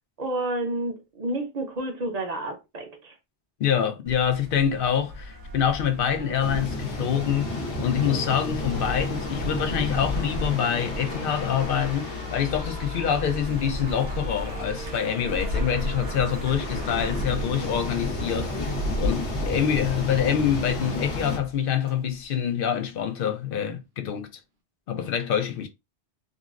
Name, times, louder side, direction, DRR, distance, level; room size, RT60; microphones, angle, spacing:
voice 1, 0.2-3.1, right 2 dB, 40° right, 0.7 m, -30 dB
voice 2, 3.6-24.3 24.9-25.7, left 8 dB, 60° left, 0.7 m, -26 dB
sound 1, 4.1-22.2, left 1 dB, 90° right, 1.3 m, -34 dB
sound 2, 6.1-22.8, right 3 dB, 65° right, 1.0 m, -46 dB
sound 3, 6.4-21.4, left 2 dB, 80° left, 1.2 m, -34 dB
3.8 x 2.0 x 2.4 m
omnidirectional pair, 1.1 m